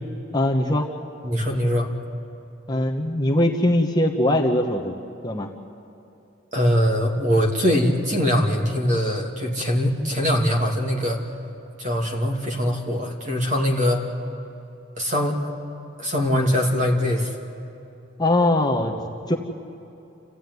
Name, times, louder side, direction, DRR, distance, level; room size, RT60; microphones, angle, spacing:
voice 1, 0.3-0.9 2.7-5.0 5.2-5.5 18.2-18.9 19.3-19.4, left 1 dB, 20° left, 2 dB, 1.0 m, -21 dB
voice 2, 1.2-1.9 6.5-11.2 11.8-14.0 15.0-15.5 16.0-17.3, equal, 35° right, 0 dB, 2.5 m, -22 dB
28.0 x 15.5 x 9.5 m, 2.8 s
head